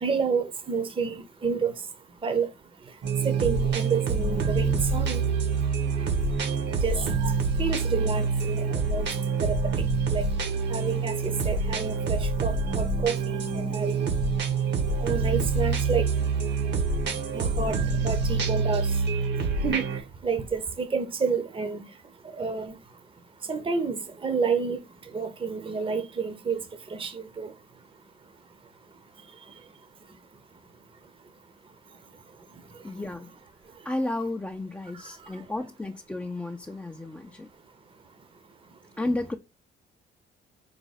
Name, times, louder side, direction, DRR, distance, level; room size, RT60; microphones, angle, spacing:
voice 1, 0.0-1.7 2.2-2.5 3.2-5.2 6.8-7.3 7.6-9.0 9.4-9.6 10.1-10.2 10.7-14.1 15.0-16.1 17.3-18.9 19.6-19.8 20.2-21.8 22.4-22.7 23.5-24.8 25.1-26.6 26.9-27.5, right 5 dB, 25° right, 0.8 m, -29 dB
sound 1, 3.0-20.0, right 4 dB, 60° right, 1.0 m, -26 dB
voice 2, 32.8-33.3 33.9-37.5 39.0-39.3, left 2 dB, 5° left, 0.4 m, -32 dB
4.9 x 2.2 x 4.0 m
cardioid pair, 90°, 20 cm